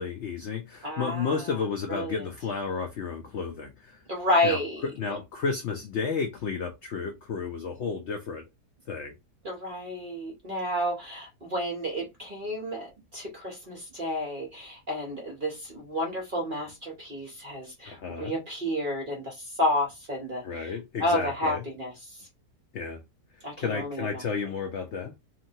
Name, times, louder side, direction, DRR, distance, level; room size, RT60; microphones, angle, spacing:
voice 1, 0.0-4.0 4.4-4.6 4.9-8.5 8.9-9.1 17.9-18.4 20.4-21.6 22.7-23.0 23.3-25.2, left 5 dB, 90° left, 0.6 m, -32 dB
voice 2, 0.8-1.5 1.9-2.3 4.1-4.8 9.4-20.4 21.0-21.9 23.4-24.2, left 1 dB, 45° right, 0.6 m, -30 dB
2.9 x 2.5 x 2.7 m
omnidirectional pair, 1.8 m